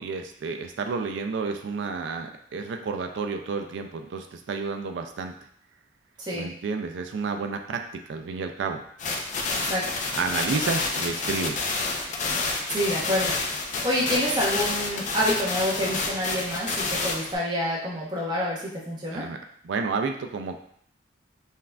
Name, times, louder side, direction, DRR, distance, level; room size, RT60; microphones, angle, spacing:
voice 1, 0.0-5.3 6.3-7.8 8.1-8.8 10.1-11.8 19.1-19.4 19.6-20.6, right 4 dB, 75° right, 5 dB, 0.3 m, -30 dB
sound 1, 9.0-17.3, left 3 dB, 40° left, 0.5 m, -29 dB
voice 2, 12.7-13.3 13.8-18.6 18.9-19.3, equal, 25° right, -5 dB, 0.8 m, -27 dB
5.5 x 2.4 x 2.2 m, 0.67 s
head